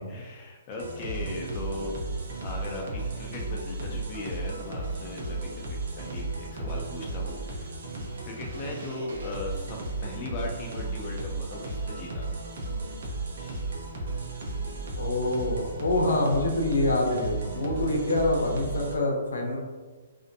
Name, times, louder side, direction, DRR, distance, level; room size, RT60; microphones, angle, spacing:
voice 1, 0.0-2.0 2.4-7.8 8.2-12.4 13.4-13.7, left 2 dB, 30° left, -1 dB, 0.4 m, -38 dB
sound 1, 0.8-18.9, right 3 dB, 60° right, 0.6 m, -34 dB
voice 2, 15.0-19.6, left 2 dB, 90° left, -1 dB, 0.6 m, -26 dB
2.5 x 2.1 x 2.5 m, 1.4 s
hypercardioid pair, 155°, 0 cm